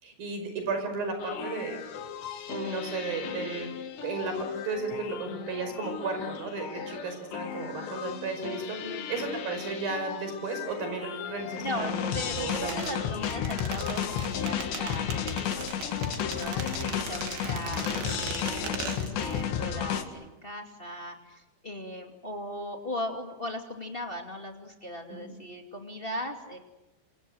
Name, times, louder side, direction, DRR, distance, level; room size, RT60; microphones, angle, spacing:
voice 1, 0.0-1.8 2.5-3.7 4.0-4.3 4.7-13.1 17.2-17.4 25.1-25.3, right 4 dB, 55° right, 6 dB, 6.9 m, -34 dB
sound 1, 1.2-20.0, left 9 dB, 85° left, 4.1 m, -34 dB
voice 2, 11.6-15.9 16.3-26.6, left 1 dB, 20° left, 3 dB, 1.7 m, -38 dB
sound 2, 12.3-19.5 19.7-19.8, right 8 dB, 90° right, 4.2 m, -39 dB
27.5 x 27.0 x 7.9 m, 1.0 s
omnidirectional pair, 4.9 m